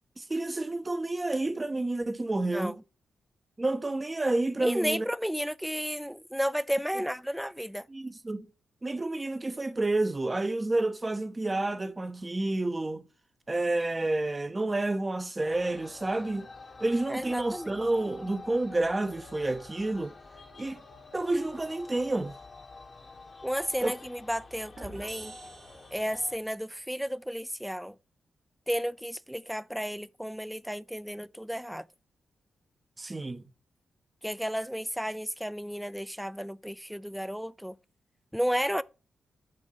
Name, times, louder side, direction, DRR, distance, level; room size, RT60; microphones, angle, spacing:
voice 1, 0.2-2.8 3.6-5.1 7.9-8.5 8.8-13.0 13.5-16.5 16.8-20.1 20.6-20.8 21.1-22.3 23.8-23.9 33.0-33.4, right 2 dB, 30° right, 0.7 m, -29 dB
voice 2, 4.6-7.9 17.1-17.8 23.4-25.3 25.9-28.0 28.7-31.9 34.2-37.8 38.3-38.8, equal, ahead, 0.4 m, -32 dB
sound 1, 15.4-26.4, left 3 dB, 50° left, 1.1 m, -48 dB
sound 2, 24.8-26.5, right 3 dB, 50° right, 1.1 m, -47 dB
7.5 x 2.6 x 5.6 m
supercardioid pair, 40°, 0 cm